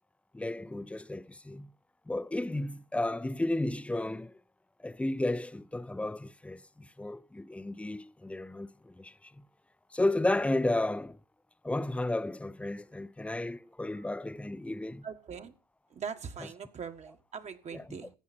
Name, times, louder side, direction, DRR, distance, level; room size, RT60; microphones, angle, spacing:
voice 1, 0.3-1.7 2.1-4.3 4.8-9.5 9.9-11.2 11.6-15.1 16.4-16.5 17.7-18.0, left 2 dB, 5° left, 0.5 m, -33 dB
voice 2, 15.0-15.5 15.9-18.1, right 6 dB, 40° right, 1.5 m, -41 dB
14.5 x 8.9 x 4.3 m
cardioid pair, 110°, 17 cm